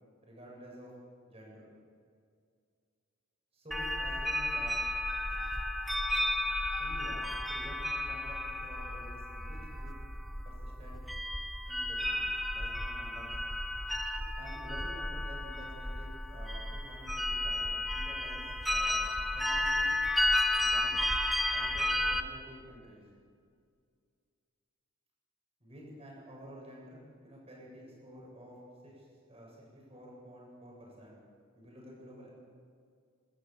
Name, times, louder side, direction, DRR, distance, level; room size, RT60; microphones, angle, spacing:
voice 1, 0.2-0.9 1.3-1.7 3.5-4.8 6.8-10.0 10.4-11.0 11.7-13.3 14.4-19.9 20.6-21.0 21.5-23.0 25.6-29.6 29.9-31.2 31.5-32.3, equal, 30° right, -3 dB, 7.3 m, -50 dB
sound 1, 3.7-22.2, left 1 dB, ahead, 0.9 m, -33 dB
27.0 x 13.5 x 7.5 m, 2.2 s
head